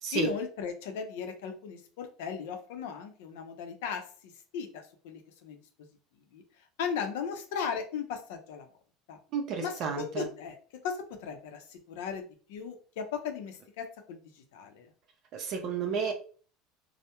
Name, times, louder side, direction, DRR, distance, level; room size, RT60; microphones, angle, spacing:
voice 1, 0.1-4.0 4.5-5.6 6.3-6.4 6.8-8.7 9.1-9.2 9.6-10.6 10.8-14.9, left 6 dB, 80° left, 6 dB, 0.5 m, -37 dB
voice 2, 9.3-10.3 15.3-16.1, right 6 dB, 50° right, 3 dB, 0.4 m, -31 dB
2.2 x 2.0 x 2.8 m, 0.41 s
supercardioid pair, 120°, 0 cm